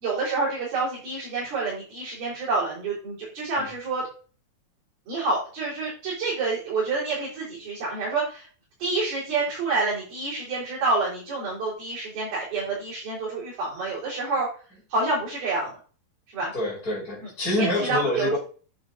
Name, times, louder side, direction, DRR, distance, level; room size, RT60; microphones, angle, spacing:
voice 1, 0.0-4.0 5.1-8.5 8.8-14.5 14.9-15.7 16.3-16.5 17.6-18.4, right 3 dB, 85° right, -7 dB, 5.8 m, -28 dB
voice 2, 16.5-18.4, left 1 dB, 25° left, -4 dB, 3.4 m, -26 dB
10.0 x 6.3 x 3.9 m, 0.38 s
omnidirectional pair, 4.1 m